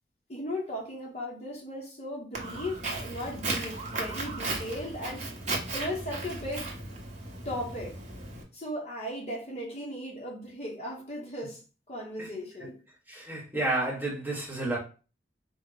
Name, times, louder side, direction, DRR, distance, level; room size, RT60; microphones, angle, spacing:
voice 1, 0.3-5.3 5.7-6.8 7.4-8.0 8.5-11.6 11.9-12.7, left 1 dB, 35° left, 1.0 m, -37 dB
Walk footsteps, 2.3-8.4, right 2 dB, 40° right, 0.9 m, -36 dB
voice 2, 13.1-14.8, right 2 dB, 10° right, 1.1 m, -31 dB
4.2 x 2.1 x 3.8 m
head